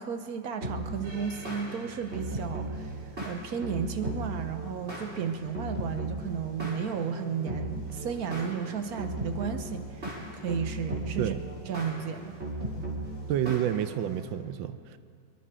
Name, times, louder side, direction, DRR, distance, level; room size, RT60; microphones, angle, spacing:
voice 1, 0.0-3.0 3.2-11.3 11.7-12.4, right 7 dB, 60° right, 8 dB, 1.1 m, -33 dB
sound 1, 0.6-14.3, right 1 dB, 35° right, 3.0 m, -37 dB
voice 2, 13.3-15.0, right 11 dB, 85° right, 12 dB, 1.4 m, -29 dB
24.0 x 11.0 x 5.0 m, 2.2 s
omnidirectional pair, 2.1 m